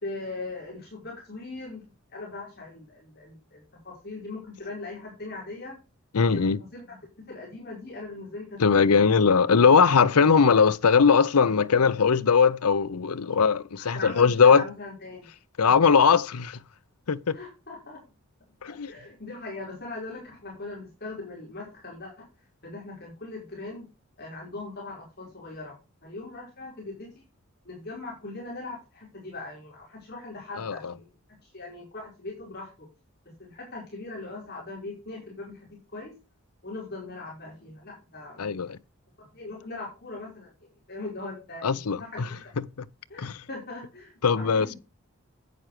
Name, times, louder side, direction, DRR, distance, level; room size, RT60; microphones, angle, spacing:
voice 1, 0.0-1.8 2.1-5.8 6.6-8.6 13.8-15.3 17.3-18.0 18.6-22.3 22.6-23.9 24.2-25.8 26.0-27.2 27.6-31.1 31.4-32.9 33.4-36.1 36.6-38.8 39.2-40.5 40.9-42.5 43.1-44.8, left 2 dB, 45° left, 4.7 m, -40 dB
voice 2, 6.1-6.6 8.6-14.6 15.6-16.6 17.1-17.4 18.6-18.9 30.6-30.7 38.4-38.8 41.6-42.0 42.8-42.9 43.2-43.4 44.2-44.7, left 5 dB, 85° left, 0.6 m, -20 dB
11.0 x 9.0 x 3.2 m
head